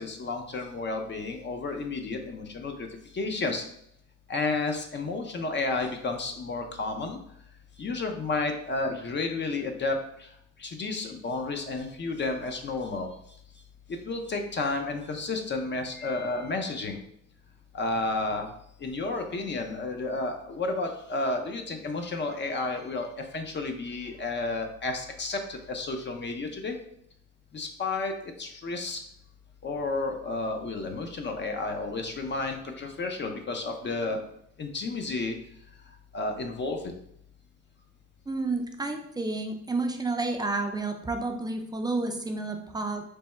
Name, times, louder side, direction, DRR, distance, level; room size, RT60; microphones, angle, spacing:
voice 1, 0.0-2.9 3.1-3.6 4.3-7.2 7.8-10.3 10.6-13.1 14.0-17.0 17.7-18.5 18.8-26.8 27.5-29.0 29.6-34.2 34.6-35.3 36.1-36.9, left 3 dB, 35° left, 4 dB, 0.6 m, -31 dB
voice 2, 38.3-43.1, right 3 dB, 15° right, 3 dB, 0.4 m, -30 dB
3.4 x 2.1 x 4.2 m, 0.72 s
cardioid pair, 90°, 30 cm